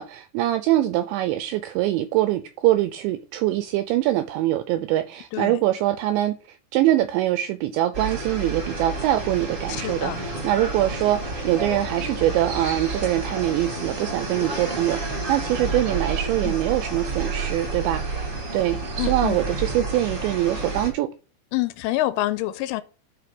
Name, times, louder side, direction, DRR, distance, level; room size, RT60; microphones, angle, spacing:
voice 1, 0.0-21.1, right 14 dB, 85° right, 2.6 m, -24 dB
sound 1, 7.9-20.9, right 3 dB, 50° right, 0.9 m, -30 dB
voice 2, 9.7-10.2 16.4-16.6 19.0-19.4 21.5-22.8, left 16 dB, 85° left, 3.1 m, -27 dB
11.0 x 5.1 x 6.0 m
omnidirectional pair, 5.8 m